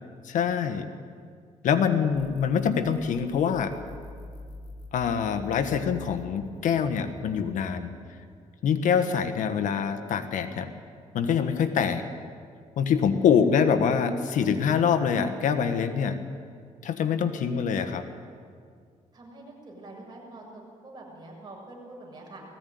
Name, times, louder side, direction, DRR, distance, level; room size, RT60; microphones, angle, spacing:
voice 1, 0.2-0.9 1.6-3.7 4.9-7.9 8.6-10.7 11.1-12.0 12.8-16.2 16.8-18.0, left 7 dB, 80° left, 9 dB, 1.4 m, -25 dB
sound 1, 2.1-7.7, left 1 dB, 35° left, 2.8 m, -45 dB
voice 2, 13.0-13.5 19.1-22.4, right 2 dB, 35° right, -2 dB, 7.0 m, -45 dB
19.5 x 15.5 x 9.5 m, 2.1 s
cardioid pair, 100°, 13 cm